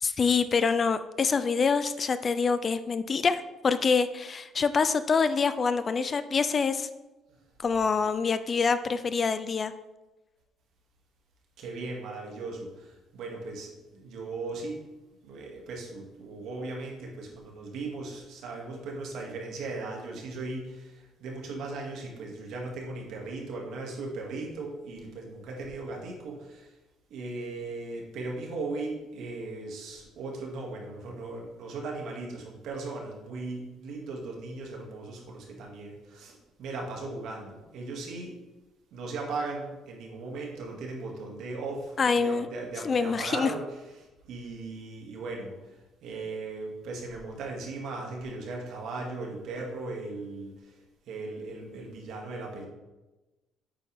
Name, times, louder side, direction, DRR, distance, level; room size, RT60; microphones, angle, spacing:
voice 1, 0.0-6.9 7.6-9.7 42.0-42.5 42.8-43.5, left 5 dB, 35° left, 12 dB, 0.5 m, -26 dB
voice 2, 11.6-14.8 15.2-26.7 27.1-38.4 38.9-52.7, right 3 dB, 75° right, 0 dB, 2.4 m, -38 dB
8.9 x 8.5 x 3.6 m, 1.1 s
cardioid pair, 115°, 0 cm